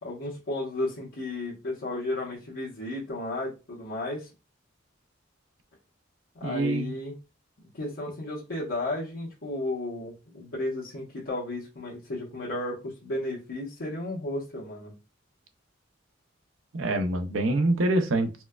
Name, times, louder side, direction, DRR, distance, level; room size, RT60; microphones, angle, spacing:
voice 1, 0.0-4.3 6.3-7.1 7.6-14.9, left 2 dB, 75° left, -8 dB, 1.1 m, -33 dB
voice 2, 6.4-6.9 16.7-18.3, right 2 dB, 85° right, 6 dB, 0.6 m, -25 dB
4.3 x 2.2 x 2.3 m, 0.29 s
head